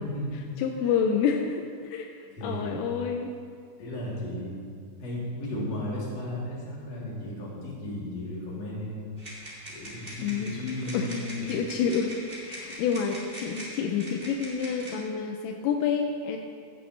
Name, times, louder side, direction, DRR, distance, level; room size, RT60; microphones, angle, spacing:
voice 1, 0.0-0.5 2.4-2.8 3.8-4.6 5.0-9.1 9.7-11.6, left 1 dB, 40° left, -7 dB, 3.2 m, -35 dB
voice 2, 0.6-3.3 10.2-10.5 10.9-16.4, left 6 dB, 85° left, 3 dB, 3.2 m, -29 dB
sound 1, 9.2-14.9, equal, 25° right, 1.0 m, -42 dB
16.0 x 10.0 x 3.3 m, 2.2 s
omnidirectional pair, 6.0 m